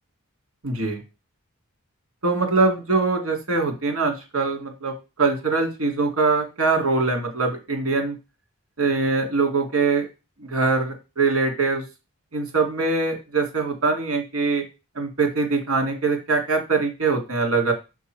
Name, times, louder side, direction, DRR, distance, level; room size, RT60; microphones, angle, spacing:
voice 1, 0.6-1.0 2.2-4.9 5.2-8.1 8.8-10.1 10.4-11.8 12.3-14.6 14.9-17.7, right 4 dB, 65° right, 3 dB, 2.1 m, -23 dB
6.7 x 3.6 x 4.4 m, 0.28 s
head